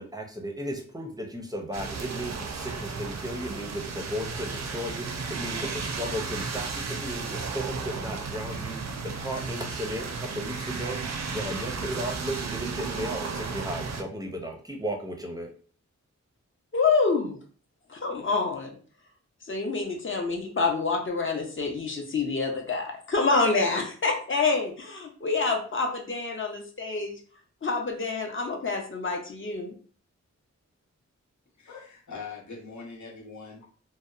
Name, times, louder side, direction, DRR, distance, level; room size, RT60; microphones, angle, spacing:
voice 1, 0.0-15.5, equal, 15° right, 2 dB, 0.5 m, -35 dB
sound 1, 1.7-14.0, right 4 dB, 65° right, 0.4 m, -34 dB
voice 2, 16.7-17.4 17.9-18.7 19.5-27.1 27.6-29.7, left 4 dB, 45° left, 2 dB, 0.6 m, -27 dB
voice 3, 31.6-33.7, left 5 dB, 80° left, -3 dB, 0.8 m, -42 dB
2.7 x 2.0 x 2.4 m, 0.43 s
wide cardioid pair, 100°, 29 cm